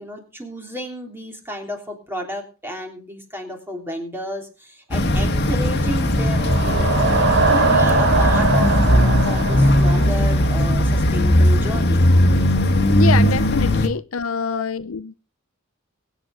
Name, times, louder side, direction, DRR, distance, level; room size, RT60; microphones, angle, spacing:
voice 1, 0.0-7.1 7.5-12.0 13.8-13.9 14.4-14.6, equal, 10° right, 3.3 m, -32 dB
sound 1, 4.9-13.9, left 1 dB, 55° left, 1.7 m, -18 dB
sound 2, 5.9-10.8, right 3 dB, 60° right, 2.4 m, -22 dB
voice 2, 12.9-15.2, left 6 dB, 80° left, 0.6 m, -25 dB
23.0 x 8.4 x 3.8 m
head